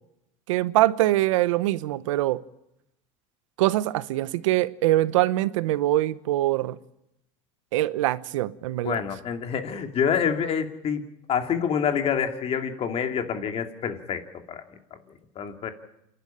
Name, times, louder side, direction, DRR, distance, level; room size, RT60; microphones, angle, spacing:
voice 1, 0.5-2.4 3.6-6.8 7.7-9.0, right 16 dB, 90° right, 0.9 m, -23 dB
voice 2, 8.8-11.0 11.3-14.6 15.4-15.7, left 7 dB, 40° left, 2.6 m, -27 dB
28.0 x 12.0 x 8.8 m
supercardioid pair, 120°, 16 cm